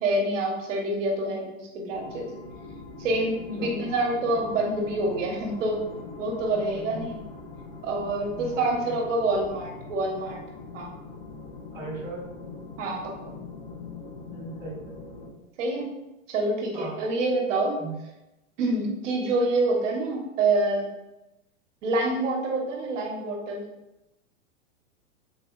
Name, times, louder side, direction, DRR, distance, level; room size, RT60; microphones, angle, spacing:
voice 1, 0.0-2.3 3.0-5.8 6.2-7.2 7.8-10.4 10.7-10.9 12.8-13.3 15.6-15.9 16.3-17.8 18.6-20.9 21.8-23.6, right 2 dB, 65° right, 1 dB, 0.9 m, -27 dB
sound 1, 1.9-15.3, left 3 dB, 50° left, 0.7 m, -42 dB
voice 2, 6.7-7.1 8.3-8.9 11.7-12.2 14.3-14.9 16.7-17.0 17.8-17.9, right 3 dB, 5° right, -7 dB, 0.7 m, -38 dB
3.4 x 2.6 x 2.4 m, 0.95 s
hypercardioid pair, 140°, 40 cm